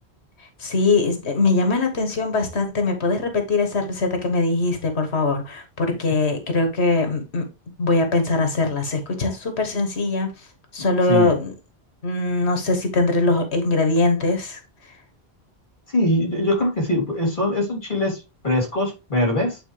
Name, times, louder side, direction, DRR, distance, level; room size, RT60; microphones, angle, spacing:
voice 1, 0.4-7.4 7.8-10.5 10.7-11.5 12.0-14.6, left 3 dB, 90° left, 1.7 m, -22 dB
voice 2, 15.9-19.6, left 1 dB, 50° left, 3.5 m, -22 dB
9.2 x 4.4 x 3.3 m
omnidirectional pair, 1.1 m